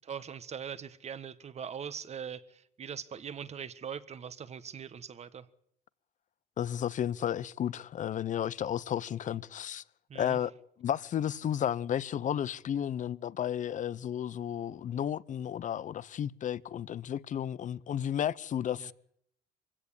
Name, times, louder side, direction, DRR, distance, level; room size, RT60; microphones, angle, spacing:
voice 1, 0.0-5.5 10.1-10.4 18.8-18.9, right 7 dB, 40° right, 1.5 m, -41 dB
voice 2, 6.6-9.8 10.1-10.5 10.8-18.9, left 10 dB, 50° left, 0.8 m, -33 dB
24.0 x 16.5 x 8.7 m
cardioid pair, 110°, 17 cm